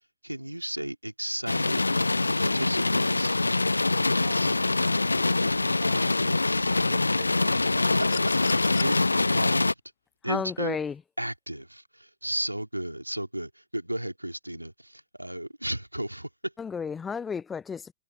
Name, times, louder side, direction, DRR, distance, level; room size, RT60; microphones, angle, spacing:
voice 1, 0.2-1.8 2.4-3.3 4.0-4.5 6.2-6.7 8.8-9.7 10.2-10.8 11.2-16.3, right 1 dB, 90° right, 2.5 m, -34 dB
sound 1, 1.5-9.7, left 2 dB, 80° left, 0.4 m, -24 dB
voice 2, 3.9-4.7 5.1-6.3 6.7-8.2, right 10 dB, 60° right, 5.0 m, -46 dB
sound 2, 7.9-9.0 10.5-10.6, left 13 dB, 55° left, 0.9 m, -39 dB
voice 3, 10.3-11.0 16.6-17.9, left 6 dB, 20° left, 0.4 m, -32 dB
figure-of-eight pair, 90°, 0 cm